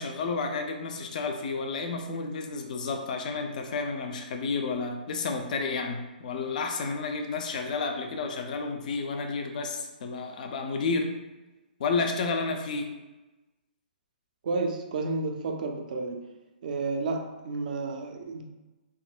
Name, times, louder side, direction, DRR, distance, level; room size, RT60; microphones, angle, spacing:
voice 1, 0.0-11.1 11.8-12.9, left 4 dB, 55° left, 4 dB, 0.4 m, -31 dB
voice 2, 14.4-16.3 16.6-18.4, right 3 dB, 55° right, 3 dB, 0.5 m, -31 dB
3.7 x 2.1 x 2.4 m, 1.1 s
hypercardioid pair, 135°, 5 cm